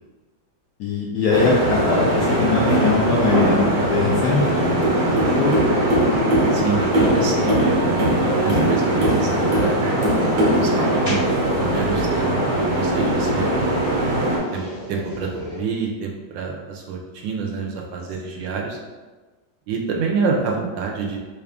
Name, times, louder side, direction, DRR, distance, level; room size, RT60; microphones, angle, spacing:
voice 1, 0.8-5.6 13.4-13.5, left 4 dB, 75° left, -3 dB, 1.0 m, -22 dB
sound 1, 1.3-14.4, right 1 dB, 55° right, 1.0 m, -20 dB
sound 2, 1.5-15.6, equal, 25° right, 0.5 m, -35 dB
voice 2, 6.5-9.7 10.5-11.2 11.7-13.5 14.5-18.8 19.7-21.2, right 5 dB, 75° right, 0 dB, 1.2 m, -27 dB
3.4 x 2.4 x 3.5 m, 1.3 s
omnidirectional pair, 2.2 m